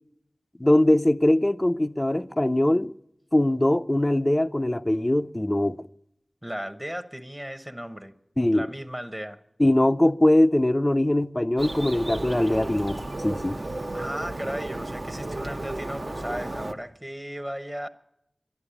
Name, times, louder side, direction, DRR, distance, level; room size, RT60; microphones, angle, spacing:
voice 1, 0.6-2.9 3.3-5.8 8.4-8.7 9.6-13.6, left 1 dB, 25° left, 0.5 m, -22 dB
voice 2, 6.4-8.1 8.5-9.4 13.9-17.9, equal, 15° right, 0.9 m, -35 dB
Bird, 11.6-16.7, right 2 dB, 50° right, 0.8 m, -33 dB
11.5 x 11.5 x 9.9 m
wide cardioid pair, 55°, 0 cm